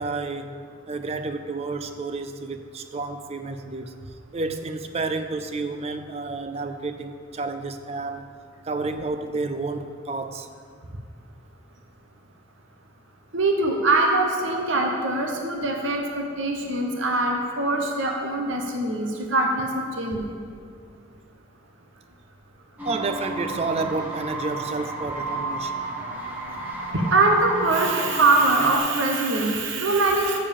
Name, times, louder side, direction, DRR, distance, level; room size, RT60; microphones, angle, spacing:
voice 1, 0.0-4.0 4.3-8.3 8.6-10.5 22.8-25.8, right 3 dB, 30° right, 9 dB, 0.4 m, -30 dB
voice 2, 13.3-20.4 26.6-30.4, right 2 dB, 65° right, 2 dB, 0.9 m, -23 dB
sound 1, 22.8-28.8, right 3 dB, 10° right, 1.2 m, -32 dB
7.2 x 6.9 x 7.0 m, 2.2 s
head